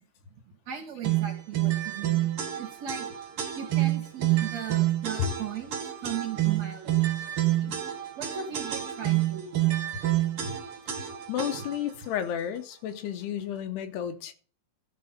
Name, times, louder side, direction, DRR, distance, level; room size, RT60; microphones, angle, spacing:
voice 1, 0.7-2.3 2.6-3.1 3.6-5.7 6.0-7.1 8.2-9.5 10.4-10.5 11.5-11.7, right 8 dB, 45° right, 3.1 m, -37 dB
sound 1, 1.0-11.9, right 14 dB, 75° right, 1.3 m, -28 dB
voice 2, 11.3-14.3, left 10 dB, 80° left, 3.0 m, -32 dB
13.5 x 5.3 x 5.6 m
omnidirectional pair, 4.8 m